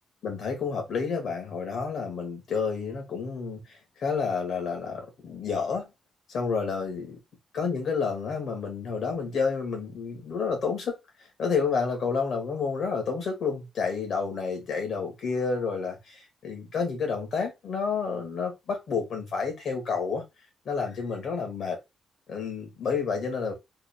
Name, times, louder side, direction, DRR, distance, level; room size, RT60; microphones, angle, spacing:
voice 1, 0.2-5.9 6.3-7.1 7.5-20.2 20.6-21.8 22.3-23.5, left 5 dB, 55° left, 1.7 m, -30 dB
4.0 x 3.6 x 2.2 m
wide cardioid pair, 165°, 0 cm